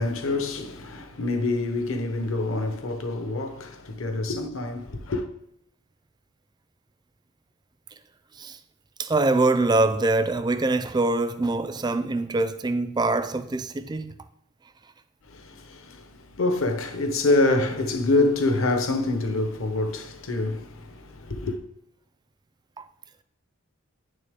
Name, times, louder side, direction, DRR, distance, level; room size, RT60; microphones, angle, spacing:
voice 1, 0.0-5.3 15.3-21.5, left 2 dB, 60° left, 1.0 m, -26 dB
voice 2, 9.0-14.1 22.8-22.9, right 2 dB, 20° right, 0.4 m, -24 dB
9.2 x 6.7 x 3.7 m
head